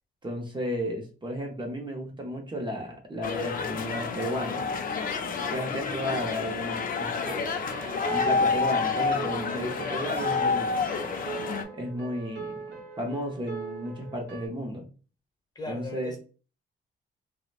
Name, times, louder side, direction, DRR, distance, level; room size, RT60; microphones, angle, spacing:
voice 1, 0.2-4.7 5.5-7.7 8.1-10.9 11.7-12.6 13.0-14.9 15.7-16.1, equal, 25° right, 1 dB, 0.7 m, -34 dB
sound 1, 3.2-11.6, left 5 dB, 45° left, 0.4 m, -29 dB
sound 2, 7.3-14.5, right 4 dB, 60° right, 0.7 m, -40 dB
voice 2, 15.5-16.2, left 2 dB, 20° left, 3 dB, 0.9 m, -38 dB
2.8 x 2.1 x 2.3 m, 0.35 s
cardioid pair, 90°, 20 cm